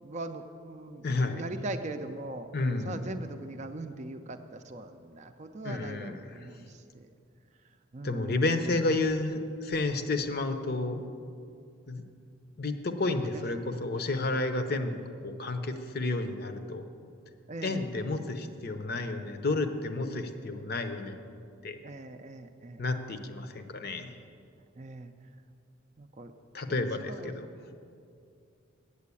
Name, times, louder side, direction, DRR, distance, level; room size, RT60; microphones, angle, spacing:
voice 1, 0.0-1.0 1.3-2.5 2.8-7.1 7.9-8.7 13.2-13.8 17.5-17.8 21.8-22.8 24.8-25.1 26.0-26.3 26.7-26.8 27.1-27.3, right 2 dB, 35° right, 7 dB, 0.5 m, -41 dB
voice 2, 1.0-1.4 2.5-3.1 5.6-6.6 8.0-11.0 11.9-12.0 12.6-16.9 17.6-21.2 21.6-21.8 22.8-24.1 26.5-27.5, left 2 dB, 50° left, 8 dB, 0.7 m, -31 dB
8.3 x 7.5 x 8.4 m, 2.5 s
head